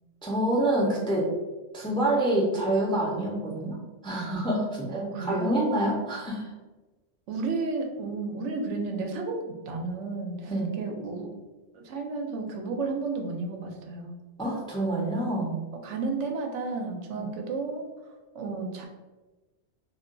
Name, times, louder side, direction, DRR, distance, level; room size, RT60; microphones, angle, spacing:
voice 1, 0.2-1.3 1.7-3.8 4.0-6.5 10.5-10.7 14.4-15.6 17.2-17.3, right 1 dB, 5° left, -4 dB, 0.4 m, -27 dB
voice 2, 4.9-5.6 7.3-9.4 9.6-10.5 10.8-11.3 11.7-14.2 15.7-17.9 18.3-18.9, right 3 dB, 85° right, 3 dB, 0.9 m, -32 dB
2.4 x 2.2 x 3.7 m, 1.2 s
omnidirectional pair, 1.2 m